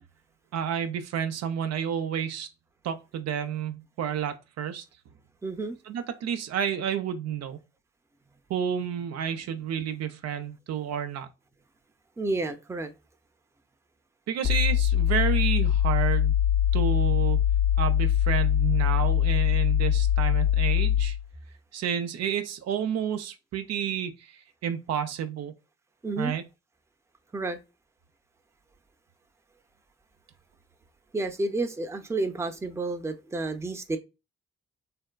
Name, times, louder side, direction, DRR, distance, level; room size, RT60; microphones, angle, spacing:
voice 1, 0.5-2.5 2.8-4.8 5.9-7.6 8.5-11.3 14.3-16.4 16.7-17.4 17.8-21.2 21.7-25.5 26.2-26.4, right 8 dB, 60° right, 0.5 m, -30 dB
voice 2, 5.4-5.8 12.2-12.9 26.0-26.3 27.3-27.6 31.1-34.0, right 2 dB, 10° right, 0.6 m, -30 dB
sound 1, 14.4-21.2, left 10 dB, 40° left, 0.5 m, -23 dB
3.5 x 2.1 x 2.2 m
hypercardioid pair, 40°, 30 cm